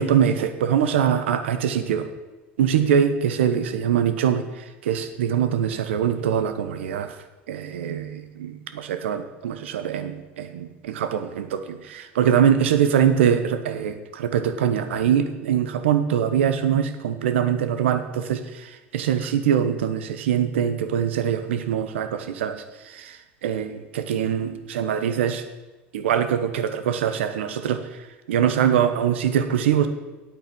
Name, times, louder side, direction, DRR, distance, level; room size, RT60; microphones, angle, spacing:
voice 1, 0.0-2.1 2.6-4.4 4.8-7.1 7.5-18.7 18.9-22.6 22.9-23.2 23.4-25.4 25.9-27.8 28.3-29.9, right 8 dB, 85° right, 9 dB, 1.0 m, -23 dB
9.2 x 8.5 x 6.2 m, 1.2 s
hypercardioid pair, 90°, 6 cm